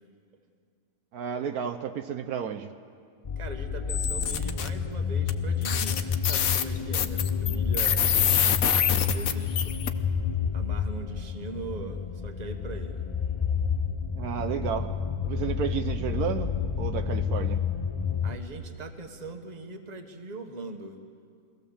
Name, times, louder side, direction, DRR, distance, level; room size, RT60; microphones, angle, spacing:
voice 1, 1.1-2.7 14.1-15.0 15.2-17.6, right 8 dB, 75° right, 6 dB, 1.2 m, -32 dB
sound 1, 3.3-18.4, left 6 dB, 45° left, 0.4 m, -30 dB
voice 2, 3.4-8.5 8.7-10.1 10.5-13.1 18.2-21.0, right 3 dB, 30° right, 5 dB, 1.3 m, -41 dB
sound 2, 3.9-4.7 5.3-5.4 5.6-9.9, left 9 dB, 65° left, 1.2 m, -26 dB
23.0 x 16.5 x 7.1 m, 2.2 s
omnidirectional pair, 1.6 m